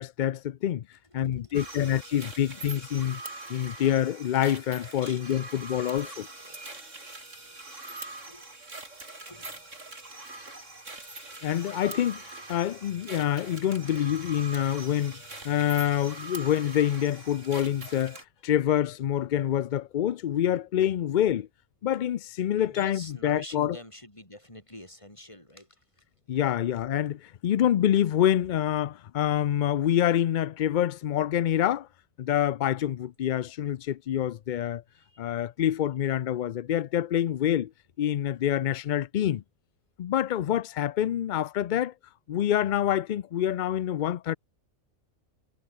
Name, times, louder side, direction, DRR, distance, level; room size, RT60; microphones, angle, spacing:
voice 1, 0.0-0.8 1.1-3.2 3.5-6.3 11.4-12.2 12.5-21.5 21.8-23.8 26.3-31.9 32.2-34.8 35.2-37.7 38.0-39.4 40.0-41.9 42.3-44.3, left 11 dB, 80° left, 0.4 m, -26 dB
voice 2, 1.0-2.2 5.0-5.5 6.4-7.0 7.4-7.6 8.2-8.5 9.3-10.0 11.1-11.4 13.9-14.8 15.3-15.4 22.6-26.1 26.6-26.7 34.9-35.4 37.3-37.4, left 1 dB, 20° left, 5.4 m, -48 dB
sound 1, 1.5-18.2, right 2 dB, 65° right, 5.2 m, -43 dB
omnidirectional pair, 1.4 m